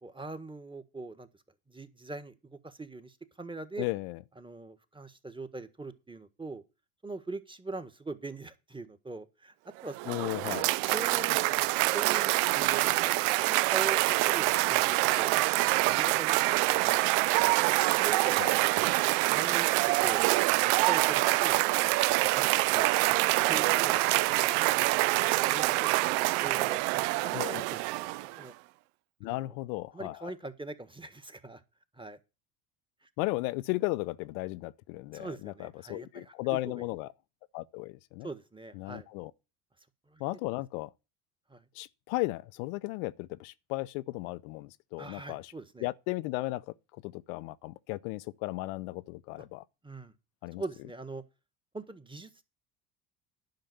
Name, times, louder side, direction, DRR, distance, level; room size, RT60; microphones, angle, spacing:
voice 1, 0.0-1.3 1.7-3.9 4.4-6.6 7.0-9.5 9.8-10.3 10.8-11.6 11.9-13.1 13.4-14.0 14.3-15.3 15.8-17.6 18.0-18.9 19.3-19.7 20.0-20.3 20.6-21.6 22.1-24.7 25.5-26.0 26.4-28.5 29.2-29.6 29.9-31.6 31.9-32.2 33.0-33.1 35.1-36.8 38.2-39.1 40.1-40.2 41.5-41.6 45.0-45.9 49.8-50.1 50.6-51.2 51.7-52.4, right 3 dB, 10° right, 1.5 m, -42 dB
voice 2, 3.8-4.2 10.1-10.7 18.4-18.5 27.3-27.6 29.2-30.3 33.2-37.1 37.5-38.3 38.7-39.3 40.2-40.9 41.7-45.5 45.8-46.7 47.0-49.6 50.4-50.6, left 20 dB, 75° left, 0.7 m, -35 dB
Cheering / Applause, 9.8-28.4, right 21 dB, 70° right, 0.6 m, -26 dB
10.5 x 5.8 x 8.0 m
hypercardioid pair, 75°, 42 cm